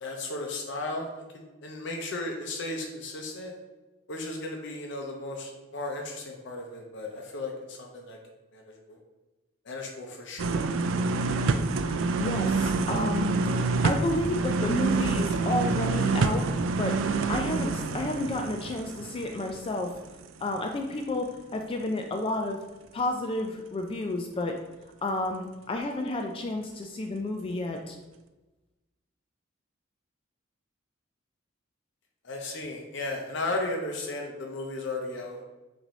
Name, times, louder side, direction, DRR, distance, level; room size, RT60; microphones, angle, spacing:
voice 1, 0.0-3.5 4.1-8.2 8.5-9.0 9.6-10.6 32.2-35.4, left 2 dB, 65° left, 1 dB, 0.6 m, -35 dB
sound 1, 10.4-20.2 20.6-20.7, right 3 dB, 75° right, 0.3 m, -27 dB
voice 2, 12.2-16.5 16.8-19.9 20.4-22.6 22.9-24.6 25.0-28.0, left 2 dB, 25° left, 3 dB, 0.3 m, -31 dB
6.0 x 2.7 x 3.1 m, 1.1 s
head